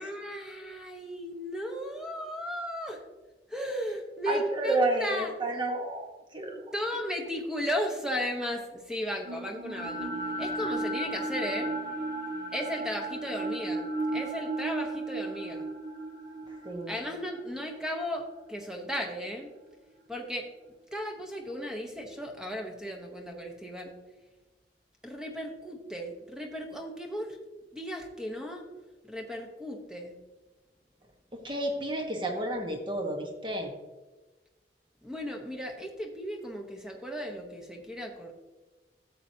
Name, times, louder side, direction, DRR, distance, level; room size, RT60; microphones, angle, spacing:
voice 1, 0.0-3.0 3.5-5.3 6.7-10.1 10.4-11.7 12.5-15.7 16.9-19.5 20.1-20.5 20.9-24.0 25.0-27.4 27.7-28.7 29.0-30.2 35.0-38.3, equal, 5° right, 2 dB, 1.0 m, -35 dB
voice 2, 4.3-6.6 16.6-17.0 31.3-33.7, right 2 dB, 25° right, 2 dB, 1.2 m, -31 dB
sound 1, 9.2-19.4, right 2 dB, 55° right, 1.8 m, -35 dB
12.5 x 7.6 x 2.8 m, 1.2 s
head